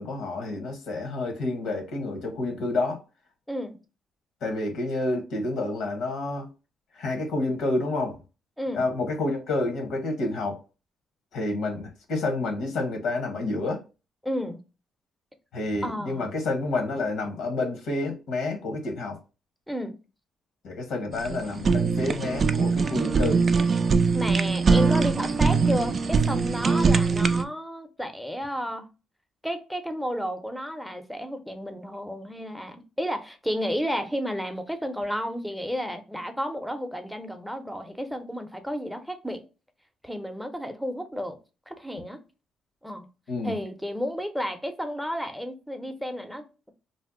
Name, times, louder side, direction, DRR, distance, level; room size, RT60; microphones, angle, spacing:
voice 1, 0.0-3.0 4.4-6.5 6.9-8.2 8.7-10.6 11.3-13.8 15.5-19.2 20.6-23.5 43.3-43.6, left 2 dB, 80° left, 0.9 m, -29 dB
voice 2, 14.2-14.6 15.8-16.2 19.7-20.0 24.1-28.9 29.4-39.4 40.0-41.4 41.7-42.2 42.8-43.1 43.4-46.7, equal, ahead, 0.6 m, -32 dB
Fire, 21.1-27.4, right 5 dB, 45° right, 0.3 m, -22 dB
2.6 x 2.0 x 3.6 m
cardioid pair, 90°, 0 cm